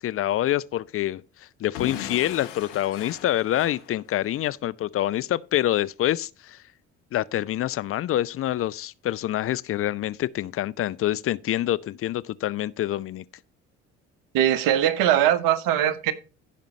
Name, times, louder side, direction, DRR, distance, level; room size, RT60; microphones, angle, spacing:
voice 1, 0.0-6.6 7.1-13.2, left 13 dB, 40° left, 0.5 m, -26 dB
Explosion / Shatter, 1.7-4.5, left 11 dB, 80° left, 1.1 m, -38 dB
voice 2, 14.3-16.1, right 11 dB, 65° right, 1.1 m, -21 dB
15.0 x 5.2 x 3.1 m
hypercardioid pair, 60°, 36 cm